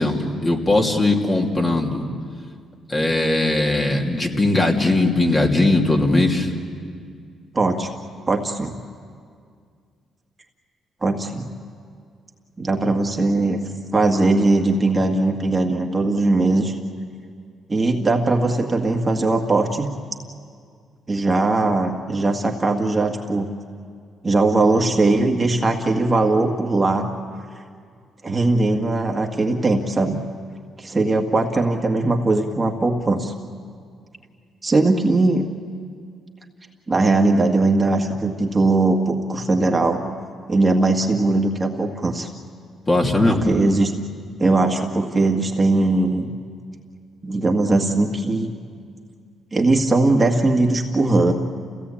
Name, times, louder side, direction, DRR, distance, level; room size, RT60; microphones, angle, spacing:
voice 1, 0.0-2.0 2.9-6.5 42.9-43.5, left 2 dB, 25° left, 1 dB, 2.8 m, -19 dB
voice 2, 7.5-7.9 8.3-8.7 11.0-11.5 12.6-13.6 13.9-16.7 17.7-19.9 21.1-23.5 24.2-27.1 28.2-30.2 30.8-33.3 34.6-35.5 36.9-40.0 40.5-42.3 43.3-43.9 44.4-46.3 47.2-48.5 49.5-51.3, right 2 dB, 25° right, 2 dB, 2.0 m, -19 dB
29.0 x 17.0 x 8.7 m, 2.1 s
cardioid pair, 90°, 0 cm